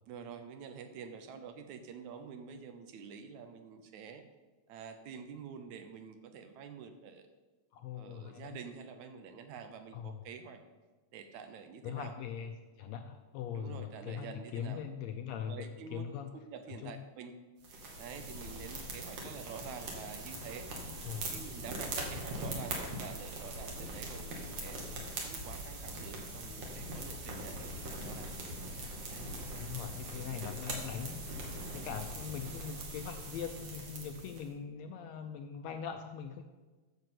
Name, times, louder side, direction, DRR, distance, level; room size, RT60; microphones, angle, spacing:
voice 1, 0.1-4.2 4.7-7.3 7.9-10.6 11.1-12.1 13.5-14.8 15.5-16.0 16.3-17.3 18.0-20.7 21.3-24.8 25.2-28.3 29.1-29.7 30.3-30.4 31.8-31.9, right 6 dB, 75° right, 8 dB, 2.1 m, -48 dB
voice 2, 7.7-8.6 9.9-10.2 11.8-16.3 16.7-17.1 21.0-21.4 27.3-27.4 29.6-36.4, left 8 dB, 75° left, 6 dB, 1.6 m, -41 dB
sound 1, 17.6-34.4, right 1 dB, 55° right, 2.9 m, -41 dB
9.6 x 7.0 x 7.6 m, 1.3 s
omnidirectional pair, 3.6 m